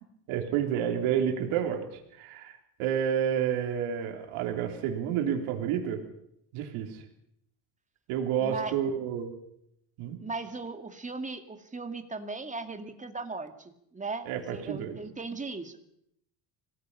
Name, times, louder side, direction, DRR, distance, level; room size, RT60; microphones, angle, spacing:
voice 1, 0.3-1.8 2.1-6.0 6.5-7.0 8.1-9.3 10.0-10.2 14.3-15.0, right 9 dB, 80° right, 4 dB, 3.6 m, -30 dB
voice 2, 8.4-8.7 10.2-16.0, right 3 dB, 15° right, 7 dB, 2.3 m, -38 dB
25.5 x 18.5 x 5.6 m, 0.74 s
cardioid pair, 115°, 48 cm